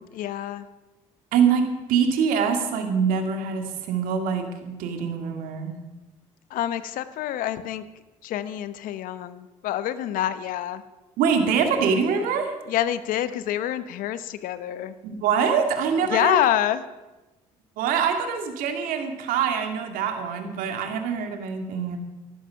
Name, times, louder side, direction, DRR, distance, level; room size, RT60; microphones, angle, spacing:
voice 1, 0.1-0.7 6.5-7.8 8.2-10.8 12.7-14.9 16.1-16.8, left 12 dB, 70° left, 14 dB, 0.9 m, -27 dB
voice 2, 1.3-5.7 11.2-12.5 15.0-16.4 17.8-22.0, right 6 dB, 75° right, 5 dB, 2.3 m, -24 dB
14.0 x 12.0 x 5.8 m, 1.1 s
supercardioid pair, 65°, 15 cm